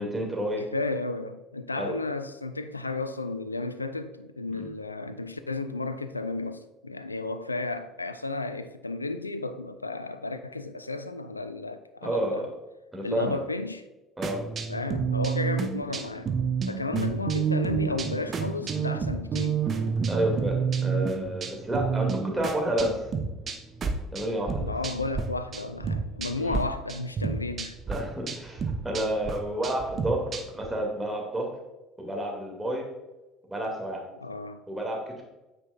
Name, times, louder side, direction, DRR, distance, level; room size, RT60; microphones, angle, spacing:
voice 1, 0.0-0.6 1.8-1.9 4.5-4.7 12.0-12.5 12.9-13.4 14.2-14.4 20.1-23.0 24.1-24.7 26.4-26.6 27.9-31.5 32.0-32.8 33.5-34.0 34.7-35.2, right 1 dB, 10° right, 2.3 m, -30 dB
voice 2, 0.6-12.5 13.0-13.8 14.7-16.3 16.7-20.0 24.6-27.8 34.2-34.6, left 3 dB, 90° left, 0.3 m, -33 dB
sound 1, 14.2-25.2 25.5-26.6 26.9-30.7, right 6 dB, 40° right, 0.8 m, -30 dB
8.7 x 5.5 x 2.4 m
figure-of-eight pair, 60°, 0 cm